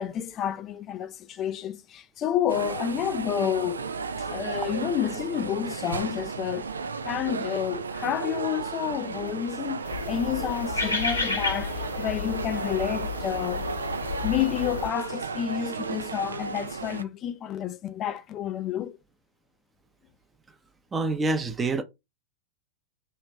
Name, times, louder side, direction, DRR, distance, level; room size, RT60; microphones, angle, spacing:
voice 1, 0.0-3.9 4.2-6.7 7.0-13.6 14.2-19.0, left 10 dB, 30° left, 0.5 m, -30 dB
sound 1, 2.5-17.0, right 5 dB, 70° right, 0.4 m, -34 dB
sound 2, 9.8-14.9, left 3 dB, 80° left, 1.4 m, -32 dB
voice 2, 20.9-21.8, right 3 dB, 15° right, 0.7 m, -26 dB
3.2 x 3.2 x 4.1 m
figure-of-eight pair, 90°, 0 cm